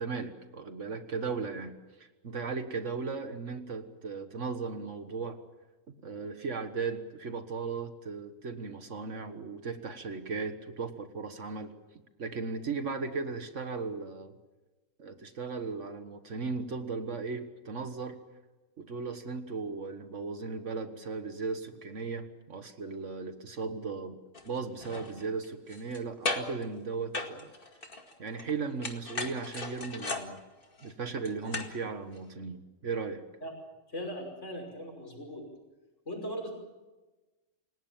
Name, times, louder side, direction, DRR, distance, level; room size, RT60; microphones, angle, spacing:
voice 1, 0.0-5.4 6.0-11.7 12.2-14.3 15.0-18.2 18.8-24.2 24.4-27.5 28.2-30.4 30.8-33.2, right 4 dB, 70° right, 8 dB, 1.8 m, -36 dB
sound 1, 24.3-24.5 24.8-26.0 26.2-26.6 27.1-28.5 28.8-31.8 32.2-32.3, left 3 dB, 45° left, 2.4 m, -37 dB
voice 2, 33.9-35.4 36.1-36.5, equal, 65° left, 2 dB, 6.0 m, -39 dB
29.0 x 18.0 x 7.4 m, 1.1 s
omnidirectional pair, 1.3 m